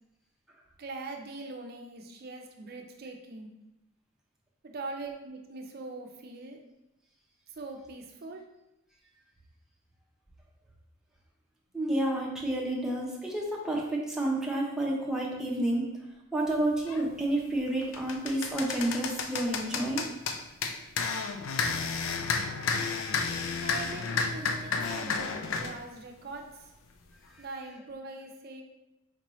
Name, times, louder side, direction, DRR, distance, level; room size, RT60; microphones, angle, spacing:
voice 1, 0.8-3.5 4.6-6.6 7.5-8.4 23.6-26.7 27.4-28.6, right 3 dB, 50° right, 3 dB, 0.5 m, -42 dB
voice 2, 11.7-15.9 16.3-20.1, right 1 dB, 5° right, -3 dB, 0.6 m, -30 dB
sound 1, 16.9-17.1 17.6-25.8, left 5 dB, 75° left, 0.4 m, -31 dB
4.5 x 2.8 x 3.0 m, 0.90 s
head